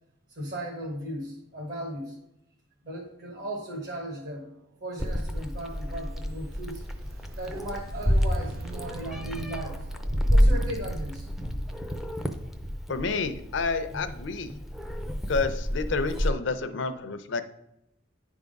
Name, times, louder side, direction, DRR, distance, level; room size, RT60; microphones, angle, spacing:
voice 1, 0.4-2.1 2.8-4.5 4.8-6.9 7.3-9.8 10.3-11.3, right 1 dB, 55° right, -1 dB, 1.2 m, -36 dB
Meow, 5.0-16.3, equal, ahead, 0.4 m, -29 dB
sound 1, 5.6-11.9, right 4 dB, 75° right, 0.4 m, -43 dB
voice 2, 12.9-14.5 15.3-17.5, left 4 dB, 65° left, 10 dB, 0.6 m, -29 dB
9.7 x 3.6 x 5.2 m, 0.86 s
head